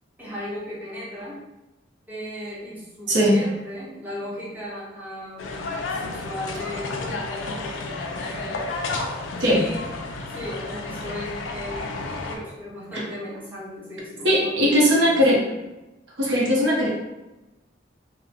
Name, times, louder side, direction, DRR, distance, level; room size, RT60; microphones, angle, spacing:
voice 1, 0.2-1.4 2.1-8.7 9.4-9.9 10.2-15.4, left 1 dB, 10° right, -7 dB, 0.5 m, -36 dB
voice 2, 3.1-3.4 9.4-9.6 12.9-13.0 14.2-15.4 16.2-16.9, equal, 75° right, -4 dB, 0.8 m, -19 dB
sound 1, 5.4-12.4, left 3 dB, 85° left, 0.4 m, -31 dB
2.8 x 2.1 x 2.4 m, 1.0 s
head